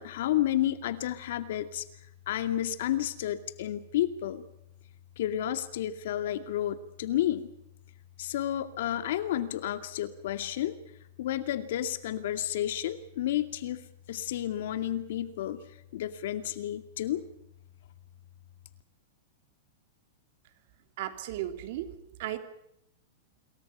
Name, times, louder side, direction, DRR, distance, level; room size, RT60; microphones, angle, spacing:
voice 1, 0.0-1.8 2.3-4.4 5.2-7.5 8.2-10.7 11.2-13.8 14.1-15.6 15.9-17.2, left 12 dB, 65° left, 10 dB, 2.3 m, -31 dB
voice 2, 21.0-22.4, right 13 dB, 55° right, 8 dB, 3.0 m, -36 dB
27.0 x 23.5 x 5.7 m, 0.78 s
supercardioid pair, 155°, 0 cm